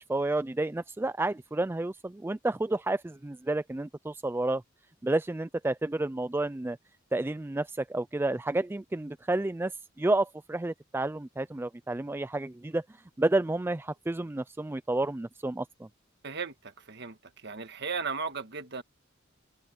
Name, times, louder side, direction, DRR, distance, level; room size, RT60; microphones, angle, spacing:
voice 1, 0.0-4.6 5.0-6.8 7.1-12.8 13.2-15.9, right 2 dB, 10° right, 0.3 m, -30 dB
voice 2, 16.2-18.8, right 5 dB, 55° right, 1.6 m, -36 dB
open air
head